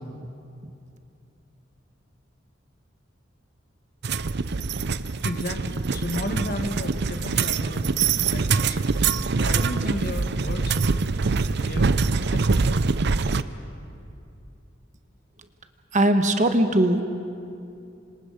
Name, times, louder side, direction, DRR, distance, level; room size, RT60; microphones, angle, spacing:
sound 1, 4.0-13.4, right 4 dB, 60° right, 0.6 m, -24 dB
voice 1, 5.2-8.8 9.3-10.8 11.6-11.9 12.2-12.8, left 1 dB, 50° left, 6 dB, 1.7 m, -34 dB
voice 2, 15.9-17.1, right 1 dB, 40° right, 7 dB, 1.2 m, -20 dB
26.5 x 26.0 x 5.2 m, 2.6 s
head